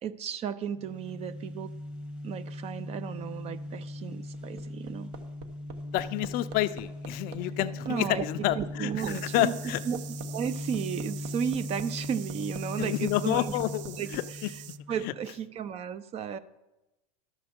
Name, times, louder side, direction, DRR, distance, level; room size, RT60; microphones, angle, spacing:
voice 1, 0.0-1.7 2.2-5.1 7.9-8.2 8.5-9.6 9.9-10.0 10.3-13.6 14.0-14.1 14.9-16.4, right 8 dB, 30° right, 15 dB, 0.5 m, -34 dB
sound 1, 0.7-15.3, left 1 dB, 5° right, 1.1 m, -39 dB
Hammer, 4.3-14.2 15.6-15.7, right 6 dB, 55° right, 1.2 m, -45 dB
voice 2, 5.9-9.8 12.8-14.5 15.0-15.1, left 15 dB, 45° left, 13 dB, 0.4 m, -29 dB
sound 2, 9.0-14.8, right 13 dB, 80° right, 0.4 m, -46 dB
11.5 x 7.3 x 4.4 m, 0.99 s
hypercardioid pair, 115°, 21 cm